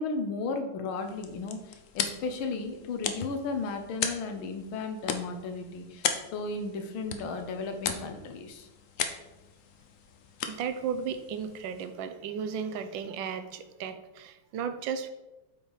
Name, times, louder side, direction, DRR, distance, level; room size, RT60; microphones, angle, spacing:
voice 1, 0.0-8.7, left 3 dB, 90° left, 6 dB, 1.7 m, -35 dB
sound 1, 0.9-12.1, left 7 dB, 75° left, 0.7 m, -38 dB
voice 2, 10.4-15.1, right 7 dB, 75° right, 9 dB, 1.3 m, -35 dB
7.8 x 4.8 x 3.9 m, 1.0 s
omnidirectional pair, 2.2 m